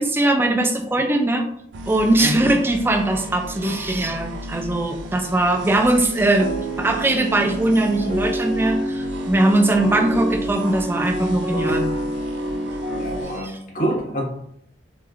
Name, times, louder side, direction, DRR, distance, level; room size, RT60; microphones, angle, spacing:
voice 1, 0.0-1.5 1.9-6.5 6.8-11.9 13.4-13.5, right 2 dB, 15° right, 4 dB, 0.3 m, -20 dB
sound 1, 1.7-13.4, right 1 dB, 85° right, 0.4 m, -35 dB
sound 2, 6.4-13.2, right 1 dB, 50° right, 1.0 m, -27 dB
voice 2, 13.0-14.2, right 1 dB, 50° left, -1 dB, 0.9 m, -26 dB
3.1 x 3.1 x 2.4 m, 0.73 s
head